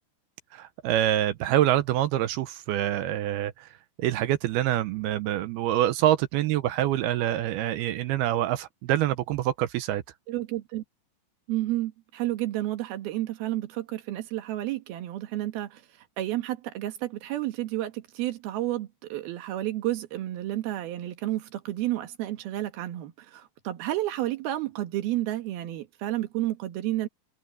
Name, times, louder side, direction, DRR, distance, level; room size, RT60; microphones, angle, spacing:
voice 1, 0.5-3.7 4.0-10.0, right 13 dB, 80° right, 2.4 m, -26 dB
voice 2, 10.3-10.8 11.5-15.8 16.2-27.1, right 15 dB, 65° right, 3.1 m, -31 dB
open air
omnidirectional pair, 5.2 m